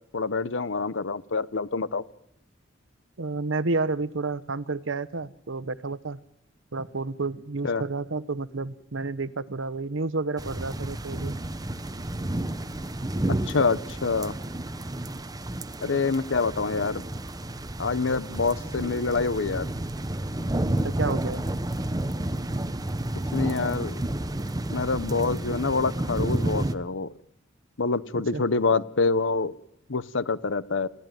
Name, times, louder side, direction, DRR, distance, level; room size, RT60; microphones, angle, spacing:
voice 1, 0.1-2.0 7.6-7.8 13.5-14.3 15.8-17.0 17.8-19.7 23.3-24.0 24.7-27.1 27.8-29.5 29.9-30.9, left 4 dB, 70° left, 17 dB, 0.9 m, -26 dB
voice 2, 3.2-6.2 6.7-11.3 20.8-21.4 28.3-28.4, right 3 dB, 80° right, 16 dB, 1.0 m, -30 dB
sound 1, 10.4-26.7, right 1 dB, 20° right, 0.9 m, -31 dB
29.0 x 16.5 x 9.2 m, 0.82 s
head